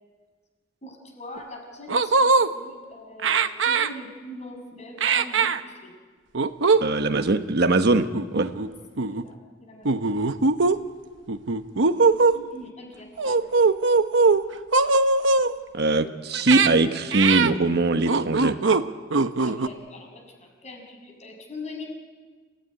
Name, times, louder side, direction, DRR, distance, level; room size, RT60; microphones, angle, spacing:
voice 1, 0.8-5.9 8.6-8.7 9.1-10.0 12.3-13.3 19.4-21.8, left 2 dB, 40° left, 2 dB, 6.3 m, -42 dB
sound 1, 1.4-1.5 1.9-2.5 3.2-3.9 5.0-5.6 6.3-6.8 7.1-7.3 8.1-8.7 9.0-9.2 9.9-10.8 11.3-12.4 13.2-14.4 14.7-15.5 16.3-16.7 17.1-17.5 18.1-18.8 19.1-19.7, right 3 dB, 75° right, 1.0 m, -20 dB
voice 2, 6.8-8.5 15.7-18.6, right 2 dB, 60° right, 8 dB, 1.2 m, -22 dB
28.0 x 16.5 x 10.0 m, 1.5 s
head